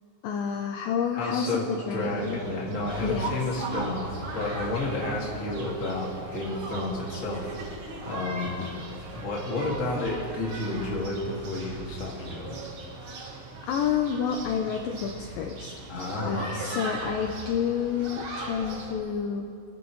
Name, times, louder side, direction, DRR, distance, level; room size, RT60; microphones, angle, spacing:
voice 1, 0.2-2.4 3.0-3.4 13.6-15.7 16.3-19.5, left 7 dB, 75° left, 3 dB, 2.1 m, -29 dB
voice 2, 1.1-1.6 1.9-7.5 8.0-8.7 9.1-12.6 15.9-16.6, left 2 dB, 30° left, -3 dB, 1.7 m, -31 dB
sound 1, 1.9-18.9, right 2 dB, 65° right, 1.3 m, -38 dB
26.5 x 11.0 x 3.2 m, 2.6 s
omnidirectional pair, 4.5 m